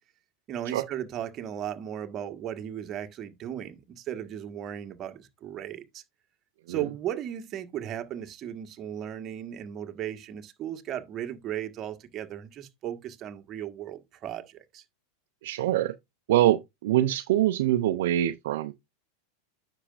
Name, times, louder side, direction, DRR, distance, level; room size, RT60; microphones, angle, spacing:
voice 1, 0.5-6.0 6.7-14.8, right 10 dB, 35° right, 1.5 m, -36 dB
voice 2, 15.4-15.9 16.3-18.7, right 13 dB, 70° right, 0.6 m, -24 dB
9.8 x 6.5 x 2.5 m
hypercardioid pair, 105°, 0 cm